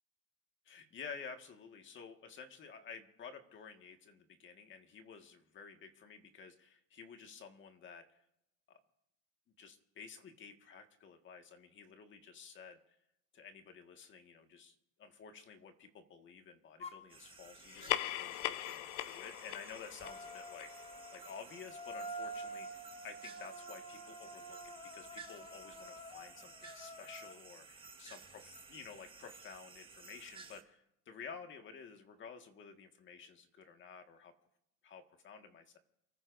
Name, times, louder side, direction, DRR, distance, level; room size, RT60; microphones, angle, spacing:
voice 1, 0.6-8.2 8.7-8.8 9.6-12.8 13.3-34.3 34.8-35.8, left 6 dB, 30° left, 5 dB, 1.8 m, -52 dB
sound 1, 16.8-17.1 20.0-27.4, right 1 dB, 15° left, 0.8 m, -48 dB
sound 2, 17.1-30.6, right 5 dB, 15° right, 1.6 m, -56 dB
sound 3, 17.6-22.5, left 15 dB, 80° left, 0.8 m, -41 dB
29.0 x 14.5 x 2.7 m, 0.82 s
supercardioid pair, 130°, 36 cm